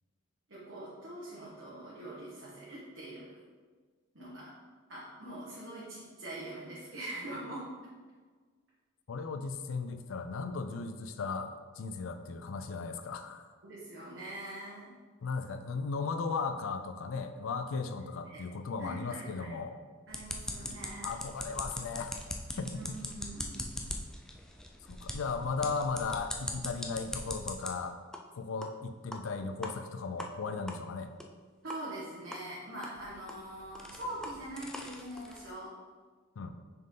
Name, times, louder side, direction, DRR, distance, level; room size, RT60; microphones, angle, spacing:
voice 1, 0.5-3.4 4.1-4.5 4.9-7.7 13.6-14.9 18.2-18.4 18.8-19.6 20.1-21.2 22.7-23.7 31.6-35.7, right 1 dB, 60° right, -8 dB, 1.3 m, -43 dB
voice 2, 9.1-13.4 15.2-19.7 21.0-22.2 22.6-23.0 24.9-28.0 28.4-31.1 36.4-36.6, left 4 dB, 85° left, 9 dB, 0.4 m, -36 dB
sound 1, 20.1-27.7 28.1-28.2 28.6-28.7 29.1-29.2 29.6-29.7 30.2-30.3 30.7-30.8 31.2-31.3 31.7-31.8 32.3-32.4 32.8-35.5, left 1 dB, 5° left, 0.4 m, -41 dB
6.2 x 4.5 x 3.8 m, 1.5 s
head